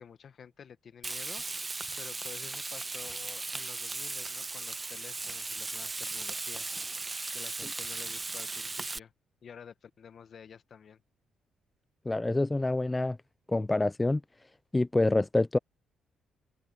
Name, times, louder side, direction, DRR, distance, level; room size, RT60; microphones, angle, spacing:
voice 1, 0.0-1.5 1.9-6.8 7.3-9.1 9.4-11.0, left 7 dB, 50° left, 1.3 m, -50 dB
Frying (food), 1.0-9.0, right 3 dB, 25° right, 1.1 m, -37 dB
voice 2, 12.1-13.2 13.5-14.2 14.7-15.6, left 2 dB, 15° left, 0.3 m, -26 dB
cardioid pair, 90°, 0 cm